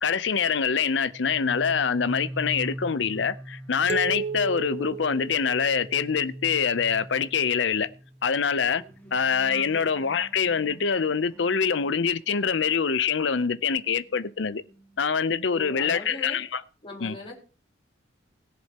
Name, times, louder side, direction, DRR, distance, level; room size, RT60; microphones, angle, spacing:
voice 1, 0.0-7.9 8.2-8.8 9.1-14.6 15.0-16.5 17.0-17.2, left 6 dB, 70° left, 0.6 m, -25 dB
sound 1, 1.0-13.2 13.5-15.6 15.9-16.3, right 1 dB, 10° left, 1.3 m, -43 dB
sound 2, 3.9-6.3, right 5 dB, 35° right, 0.5 m, -34 dB
voice 2, 15.5-16.4 16.8-17.3, left 2 dB, 30° left, 4.1 m, -40 dB
21.0 x 7.6 x 2.9 m
head